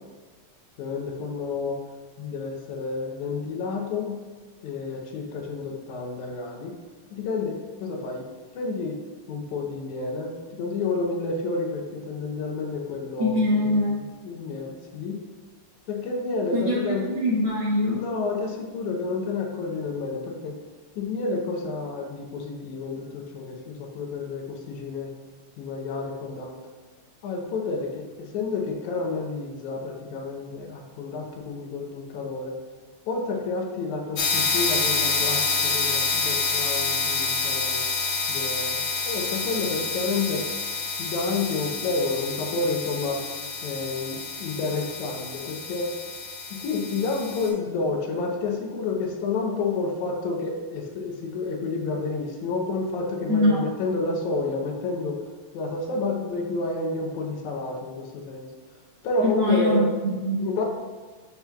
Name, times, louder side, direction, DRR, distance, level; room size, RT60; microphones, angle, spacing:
voice 1, 0.8-1.8 2.2-4.2 4.6-6.7 7.1-8.2 8.5-9.0 9.3-13.4 13.7-15.2 15.9-17.1 17.9-20.5 21.0-25.1 25.6-26.6 27.2-32.5 33.1-37.8 38.3-40.4 41.0-43.2 43.6-45.9 46.5-55.2 55.5-58.5 59.0-59.9 60.4-60.6, left 3 dB, 80° left, 1 dB, 2.2 m, -30 dB
voice 2, 13.2-14.0 16.5-16.8 17.1-18.0 53.3-53.6 59.2-60.5, left 1 dB, 60° right, -6 dB, 1.4 m, -23 dB
sound 1, 34.2-47.5, left 4 dB, 60° left, 1.3 m, -28 dB
11.5 x 4.3 x 2.3 m, 1.4 s
omnidirectional pair, 3.4 m